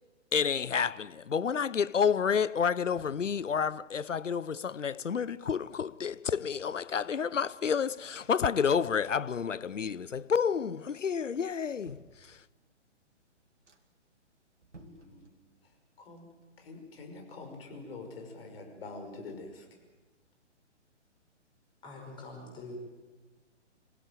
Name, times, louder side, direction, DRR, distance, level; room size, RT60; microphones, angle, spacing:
voice 1, 0.3-12.4, left 7 dB, 85° left, 0.8 m, -30 dB
sound 1, 2.6-4.0 4.7-6.1 6.4-6.5 6.8-8.4 8.8-10.0 10.3-10.8 11.3-12.8 13.2-13.3 13.6-14.1 14.5-15.8 16.0-17.9 18.2-18.3, right 3 dB, 80° right, 2.9 m, -61 dB
voice 2, 14.8-15.3 16.0-16.3 16.6-19.7, left 3 dB, 55° left, 5.8 m, -45 dB
voice 3, 21.8-22.7, left 3 dB, 15° left, 5.3 m, -45 dB
26.0 x 16.5 x 9.2 m
figure-of-eight pair, 135°, 36 cm